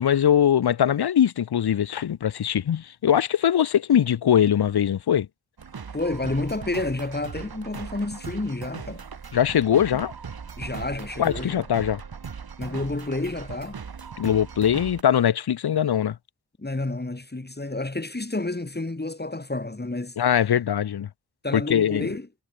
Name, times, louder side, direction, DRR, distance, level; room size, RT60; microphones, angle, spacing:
voice 1, 0.0-5.3 9.3-10.1 11.2-12.0 14.2-16.2 20.2-21.1 21.5-22.1, left 9 dB, 85° left, 0.7 m, -21 dB
sound 1, 5.6-15.0, right 6 dB, 75° right, 1.6 m, -39 dB
voice 2, 5.9-9.0 9.9-10.0 10.6-11.7 12.6-13.8 16.6-20.2 21.4-22.3, left 2 dB, 25° left, 2.5 m, -30 dB
wide cardioid pair, 50°, 37 cm